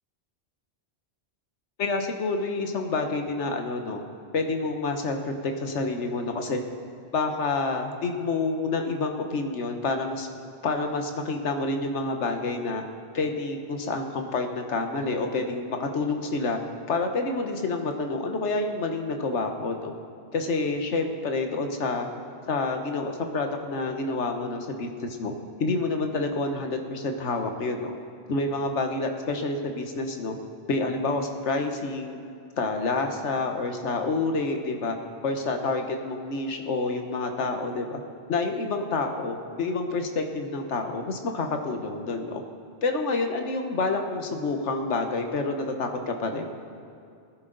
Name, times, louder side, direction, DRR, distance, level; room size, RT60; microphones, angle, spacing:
voice 1, 1.8-4.0 4.3-6.6 7.1-10.3 10.6-12.8 13.1-16.6 16.9-19.9 20.3-22.1 22.5-25.3 25.6-27.9 28.3-30.4 30.7-32.2 32.6-35.0 35.2-38.0 38.3-42.4 42.8-46.4, left 3 dB, 85° left, 5 dB, 1.4 m, -28 dB
20.0 x 10.5 x 3.9 m, 2.4 s
omnidirectional pair, 1.2 m